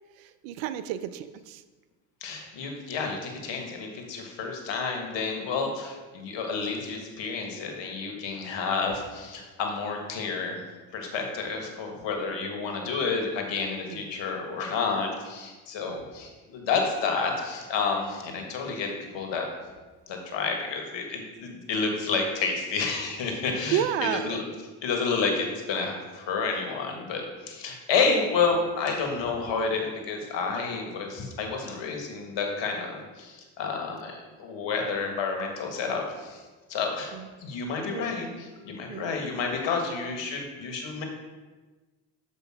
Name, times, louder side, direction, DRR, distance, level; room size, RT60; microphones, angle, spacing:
voice 1, 0.4-1.6 13.9-14.0 23.7-24.4 37.1-37.2 37.9-38.1 38.9-39.1, right 10 dB, 75° right, 13 dB, 0.6 m, -30 dB
voice 2, 2.2-10.6 10.9-19.5 20.1-24.4 24.8-36.4 36.7-37.1 37.4-41.1, left 4 dB, 65° left, 2 dB, 1.7 m, -30 dB
7.0 x 5.3 x 4.9 m, 1.3 s
hypercardioid pair, 65°, 48 cm